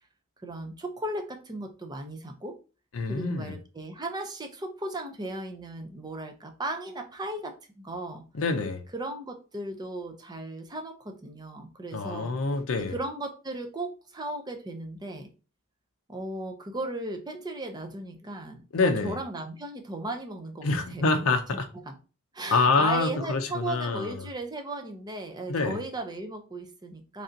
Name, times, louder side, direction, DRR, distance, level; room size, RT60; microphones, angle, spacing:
voice 1, 0.4-2.6 3.0-8.3 8.9-12.4 12.8-15.3 16.1-21.1 21.5-21.6 21.9-22.0 22.3-27.2, right 2 dB, 20° right, 0.5 m, -36 dB
voice 2, 2.9-3.6 8.3-8.8 11.9-13.0 18.7-19.2 20.6-21.7 22.5-24.1 25.5-25.8, left 3 dB, 65° left, 0.5 m, -26 dB
3.3 x 2.7 x 3.8 m
head